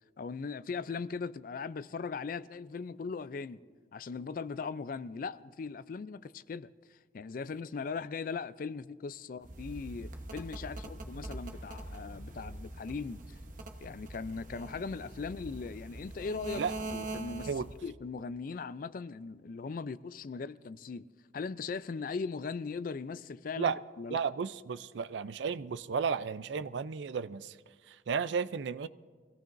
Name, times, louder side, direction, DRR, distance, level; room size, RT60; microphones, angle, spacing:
voice 1, 0.2-3.6 3.9-6.7 7.1-13.4 13.8-17.5 17.8-21.1 21.3-24.2, left 5 dB, 50° left, 0.4 m, -39 dB
sound 1, 9.4-17.8, right 2 dB, 45° right, 1.0 m, -43 dB
voice 2, 24.1-27.6 27.9-28.9, right 6 dB, 75° right, 0.4 m, -33 dB
23.5 x 17.0 x 2.6 m
head